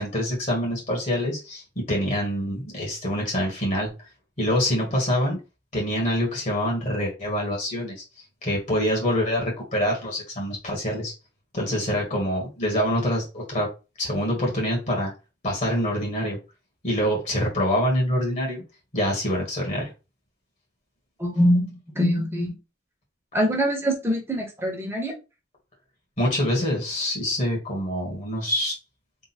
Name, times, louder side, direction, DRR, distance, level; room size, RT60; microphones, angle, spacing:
voice 1, 0.0-3.9 4.4-5.4 5.7-8.0 8.4-11.1 11.5-13.7 14.0-15.1 15.4-16.4 16.8-18.6 18.9-19.9 26.2-28.7, equal, 45° left, -2 dB, 1.8 m, -25 dB
voice 2, 21.2-22.6 23.3-25.1, equal, 15° right, 0 dB, 1.4 m, -23 dB
3.7 x 2.6 x 4.3 m, 0.28 s
head